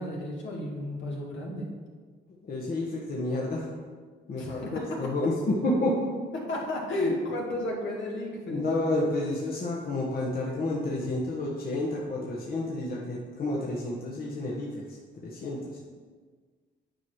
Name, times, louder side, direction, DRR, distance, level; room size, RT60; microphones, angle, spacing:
voice 1, 0.0-1.7 4.4-4.8 6.3-8.6, left 1 dB, 70° left, -2 dB, 2.0 m, -32 dB
voice 2, 2.4-3.7 4.3-6.0 8.5-15.0 15.2-15.8, left 2 dB, 45° left, -3 dB, 1.2 m, -30 dB
9.2 x 4.8 x 4.6 m, 1.5 s
cardioid pair, 90°, 20 cm